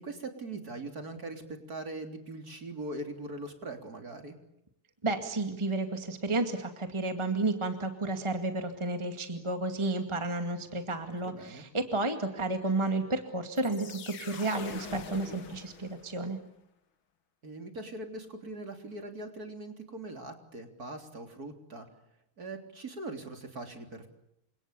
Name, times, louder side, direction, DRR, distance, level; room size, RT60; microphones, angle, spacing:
voice 1, 0.0-4.4 11.1-11.7 17.4-21.9 22.4-24.1, right 2 dB, 45° right, 6 dB, 4.1 m, -41 dB
voice 2, 5.0-16.4, right 2 dB, 15° right, 7 dB, 2.1 m, -32 dB
sound 1, 13.6-16.4, left 6 dB, 70° left, 2.6 m, -45 dB
29.5 x 26.5 x 7.0 m, 0.81 s
omnidirectional pair, 2.3 m